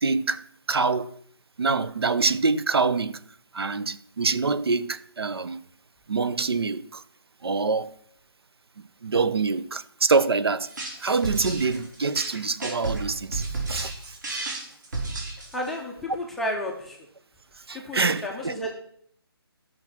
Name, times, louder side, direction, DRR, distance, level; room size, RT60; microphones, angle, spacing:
voice 1, 0.0-0.4 0.7-1.2 1.6-3.2 3.5-5.6 6.1-7.0 7.4-8.0 9.0-10.7 11.0-13.9 17.7-18.6, right 4 dB, 70° right, 0.8 m, -25 dB
sound 1, 10.6-15.7, right 3 dB, 45° right, 3.9 m, -32 dB
voice 2, 15.5-17.0 17.7-18.7, left 1 dB, ahead, 0.5 m, -32 dB
13.0 x 6.2 x 6.0 m
hypercardioid pair, 165°, 13 cm